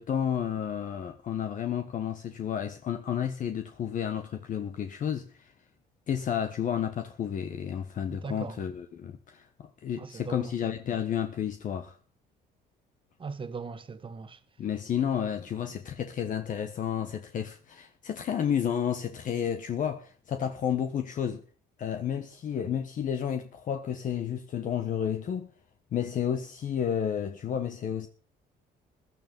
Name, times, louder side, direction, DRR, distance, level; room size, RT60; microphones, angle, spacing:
voice 1, 0.0-5.3 6.1-12.0 14.6-21.4 21.8-25.5 25.9-28.1, left 9 dB, 50° left, 1.3 m, -31 dB
voice 2, 8.2-8.6 10.0-10.5 13.2-14.4, right 5 dB, 30° right, 1.7 m, -39 dB
15.5 x 12.0 x 5.4 m
cardioid pair, 110°, 17 cm